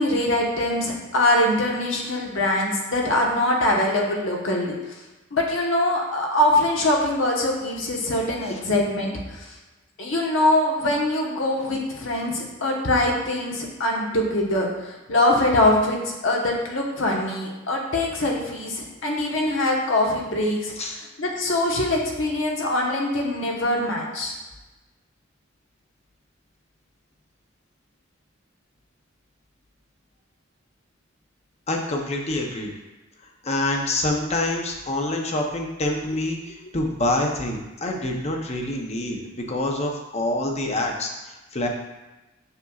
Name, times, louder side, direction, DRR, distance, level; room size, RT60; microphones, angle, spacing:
voice 1, 0.0-4.9 5.3-9.5 10.0-24.3 36.6-36.7, left 1 dB, 70° left, -1 dB, 1.2 m, -23 dB
voice 2, 31.7-32.7 33.4-41.7, left 1 dB, 35° left, 1 dB, 0.8 m, -26 dB
6.7 x 6.0 x 2.4 m, 1.1 s
head